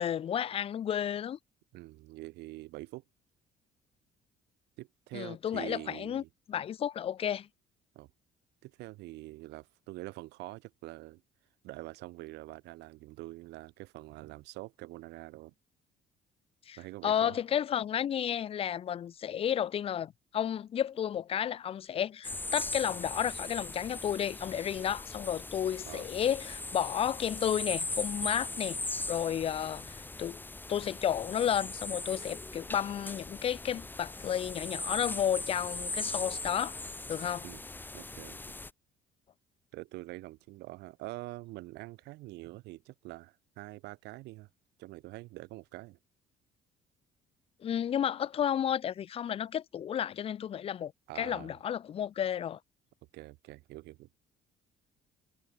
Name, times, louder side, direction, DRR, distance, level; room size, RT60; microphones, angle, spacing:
voice 1, 0.0-1.4 5.1-6.2 6.5-7.5 16.7-16.8 17.0-28.8 29.1-30.4 30.7-36.8 37.1-37.4 47.6-52.6, left 9 dB, 35° left, 0.4 m, -32 dB
voice 2, 1.7-3.0 4.8-6.3 8.0-8.1 8.6-11.2 11.6-15.5 16.8-17.4 25.9-26.1 37.4-37.6 37.9-38.4 39.7-44.5 44.8-46.0 51.1-51.6 53.1-54.1, right 20 dB, 90° right, 3.5 m, -45 dB
sound 1, 22.2-38.7, left 2 dB, 10° left, 1.0 m, -39 dB
cardioid pair, 110°, 17 cm